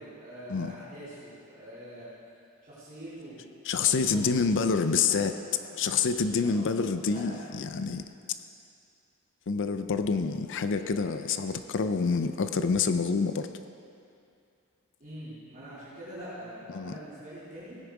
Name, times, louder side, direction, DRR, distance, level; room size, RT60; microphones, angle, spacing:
voice 1, 0.0-2.1 2.6-3.4 3.8-4.7 5.0-6.0 6.4-7.4 15.0-17.8, right 1 dB, 40° right, -11 dB, 3.7 m, -44 dB
voice 2, 3.6-5.3 5.8-8.0 9.5-13.5 16.7-16.9, left 5 dB, 60° left, 10 dB, 0.5 m, -27 dB
16.5 x 10.0 x 4.8 m, 2.5 s
head